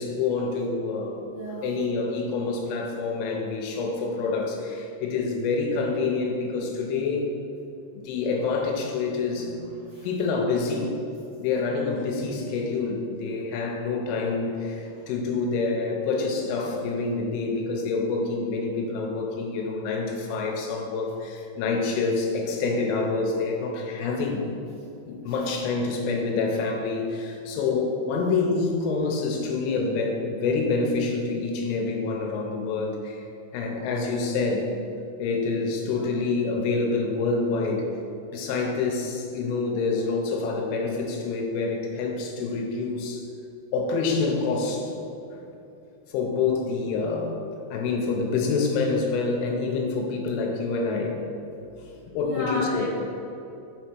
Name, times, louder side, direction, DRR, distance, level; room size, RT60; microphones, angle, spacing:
voice 1, 0.0-1.2 1.6-7.3 8.0-9.5 10.0-11.0 11.4-24.4 25.1-33.3 33.5-34.7 35.2-38.0 38.3-43.2 43.7-44.9 45.3-45.4 46.1-47.4 47.7-51.2 51.8-52.9, left 4 dB, 80° left, 1 dB, 3.0 m, -27 dB
voice 2, 1.3-1.7 9.3-9.5 9.8-10.1 14.8-14.9 19.6-19.8 25.2-25.5 35.8-36.1 52.2-52.9, equal, 70° right, -11 dB, 1.7 m, -35 dB
7.2 x 4.1 x 6.1 m, 2.8 s
omnidirectional pair, 5.8 m